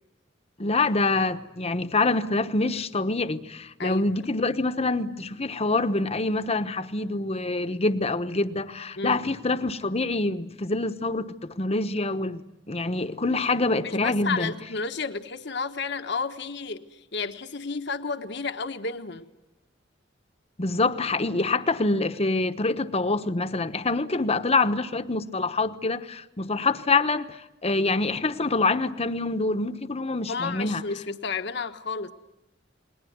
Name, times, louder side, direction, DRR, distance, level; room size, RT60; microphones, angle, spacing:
voice 1, 0.6-12.4 12.7-14.5 20.6-30.8, left 3 dB, 35° left, 1.1 m, -26 dB
voice 2, 13.8-19.3 30.3-32.1, left 4 dB, 65° left, 1.3 m, -32 dB
29.0 x 21.0 x 9.5 m
head